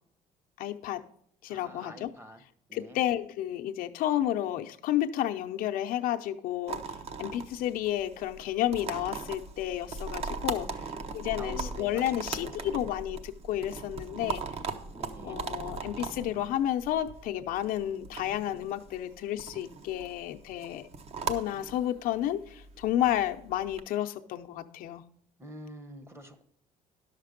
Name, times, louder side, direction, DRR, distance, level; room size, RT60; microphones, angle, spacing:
voice 1, 0.6-1.0 1.4-2.1 2.7-6.8 7.2-14.4 15.2-20.9 21.3-25.0, left 12 dB, 75° left, 7 dB, 0.6 m, -31 dB
voice 2, 1.5-2.4 2.7-3.0 10.5-12.9 14.9-15.4 25.4-26.4, equal, 15° right, 10 dB, 0.9 m, -47 dB
sound 1, 6.7-23.8, right 4 dB, 45° right, 0.8 m, -39 dB
11.0 x 6.6 x 5.1 m, 0.66 s
cardioid pair, 130°, 15 cm